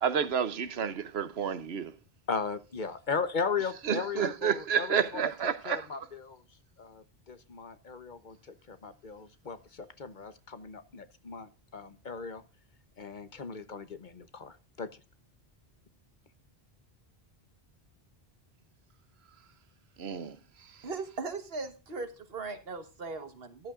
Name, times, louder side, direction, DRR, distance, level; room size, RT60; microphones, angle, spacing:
voice 1, 0.0-1.9 3.8-5.9 20.0-20.4, right 7 dB, 85° right, 1.1 m, -30 dB
voice 2, 2.3-6.4 6.8-12.4 13.0-15.0, left 5 dB, 50° left, 1.0 m, -37 dB
voice 3, 20.8-23.7, right 4 dB, 70° right, 1.6 m, -38 dB
14.0 x 11.5 x 2.5 m
omnidirectional pair, 1.0 m